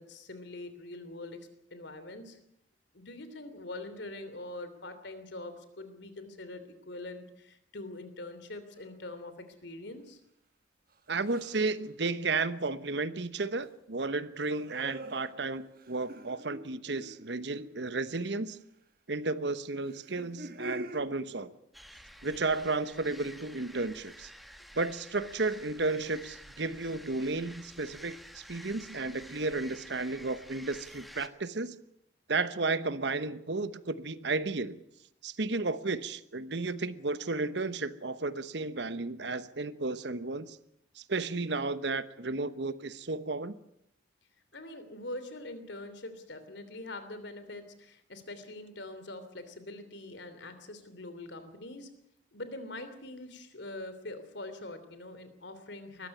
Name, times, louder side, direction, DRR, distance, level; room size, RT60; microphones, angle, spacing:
voice 1, 0.0-1.4 1.7-2.4 2.9-10.2 44.5-51.9 52.3-56.1, left 2 dB, 70° left, 11 dB, 3.2 m, -43 dB
sound 1, 8.8-9.1 11.2-11.8 14.4-18.0 19.8-21.0, right 1 dB, 50° right, 1.5 m, -45 dB
voice 2, 11.1-18.6 19.1-21.5 22.2-24.3 24.7-31.8 32.3-34.8 35.2-40.6 41.0-43.6, right 3 dB, 65° right, 14 dB, 1.0 m, -33 dB
sound 2, 21.7-31.3, equal, ahead, 1.2 m, -50 dB
21.0 x 15.0 x 9.7 m, 0.78 s
head